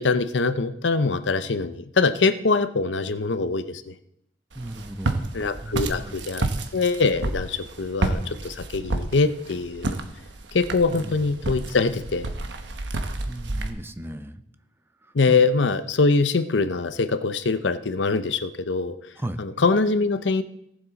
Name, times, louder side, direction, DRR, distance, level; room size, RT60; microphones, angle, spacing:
voice 1, 0.0-3.9 5.3-6.4 6.7-10.0 10.5-12.3 15.1-18.9 19.4-20.4, left 4 dB, 90° left, 12 dB, 0.7 m, -23 dB
voice 2, 4.5-5.3 5.6-6.3 10.9-11.2 13.3-14.4 15.0-15.4 19.2-19.4, right 1 dB, 15° right, 9 dB, 0.7 m, -36 dB
Walk footsteps, 4.5-13.7, right 2 dB, 80° right, 1.1 m, -30 dB
18.0 x 7.2 x 4.0 m, 0.77 s
head